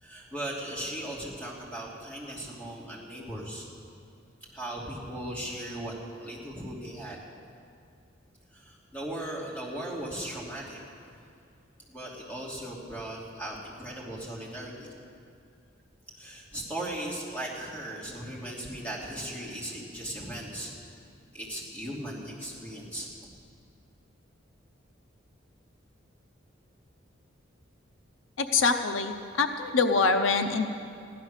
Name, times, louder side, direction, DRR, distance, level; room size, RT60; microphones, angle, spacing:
voice 1, 0.0-3.7 4.5-7.2 8.5-10.8 11.9-14.9 16.2-21.0 21.3-23.1, right 1 dB, 10° left, -5 dB, 2.8 m, -38 dB
voice 2, 28.4-30.7, left 4 dB, 85° left, 7 dB, 0.7 m, -25 dB
15.0 x 11.5 x 6.6 m, 2.4 s
head